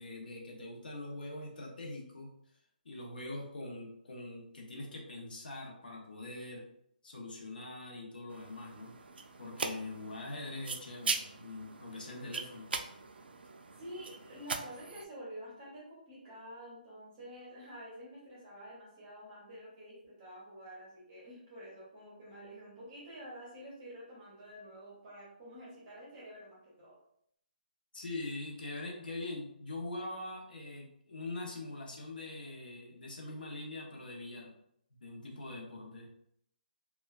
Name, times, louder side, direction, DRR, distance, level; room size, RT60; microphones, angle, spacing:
voice 1, 0.0-2.3 2.8-6.6 7.0-8.9 9.4-12.7 27.9-34.5 35.0-36.1, left 2 dB, 65° left, -1 dB, 0.8 m, -43 dB
sound 1, 8.3-15.0, right 4 dB, 85° right, 0.3 m, -40 dB
voice 2, 13.8-27.0, equal, 15° right, -6 dB, 0.7 m, -49 dB
3.0 x 2.2 x 2.3 m, 0.71 s
hypercardioid pair, 175°, 5 cm